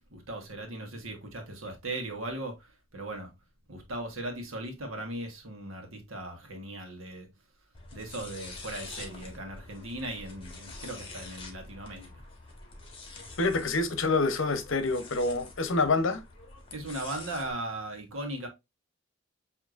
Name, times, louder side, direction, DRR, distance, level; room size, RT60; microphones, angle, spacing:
voice 1, 0.1-3.3 3.7-7.3 7.9-12.1 16.7-18.5, right 1 dB, 85° right, 1.3 m, -38 dB
sound 1, 7.7-17.5, left 3 dB, 25° left, 1.4 m, -46 dB
voice 2, 13.4-16.2, left 3 dB, 70° left, 0.8 m, -27 dB
7.6 x 2.8 x 2.5 m
head